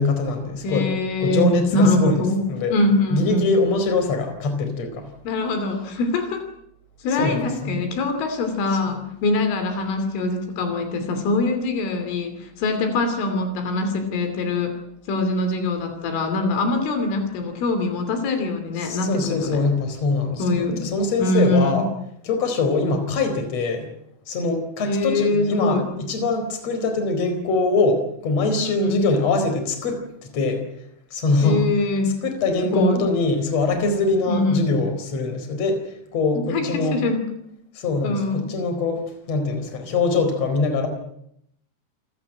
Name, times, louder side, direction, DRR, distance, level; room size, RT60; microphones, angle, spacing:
voice 1, 0.0-0.9 1.2-2.2 2.5-2.8 3.1-5.1 7.2-7.9 8.9-9.0 18.8-21.9 22.2-23.9 24.3-30.6 31.1-31.7 32.2-35.8 36.1-37.0 37.7-40.9, left 3 dB, 35° left, 7 dB, 4.9 m, -23 dB
voice 2, 0.6-3.5 5.3-6.5 7.0-14.8 15.1-19.6 20.4-20.8 21.2-21.8 24.8-25.9 28.6-29.1 31.4-32.2 32.6-33.0 34.3-34.7 36.4-37.3 38.0-38.5, left 2 dB, 75° left, 8 dB, 5.3 m, -23 dB
28.5 x 16.5 x 8.9 m, 0.75 s
omnidirectional pair, 5.8 m